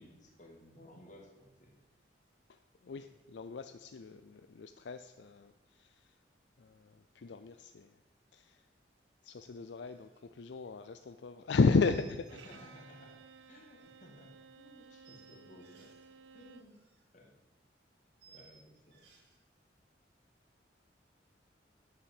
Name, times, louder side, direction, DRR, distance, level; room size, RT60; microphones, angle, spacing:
voice 1, 0.0-1.8 3.0-3.1 12.4-13.2 13.5-15.9 16.3-16.7 17.1-17.3 18.3-19.1, left 1 dB, 40° left, 1 dB, 2.2 m, -57 dB
voice 2, 2.5-6.2 6.6-8.0 8.3-8.7 9.2-12.4, left 4 dB, 70° left, 10 dB, 0.4 m, -34 dB
sound 1, 9.9-10.2 10.5-10.7 11.8-12.8 13.1-13.9 14.8-16.1 16.4-17.0 17.3-17.4 18.2-19.4, right 7 dB, 65° right, 2.6 m, -63 dB
Bowed string instrument, 12.3-16.8, right 5 dB, 90° right, 0.6 m, -56 dB
8.8 x 7.2 x 7.8 m, 1.1 s
head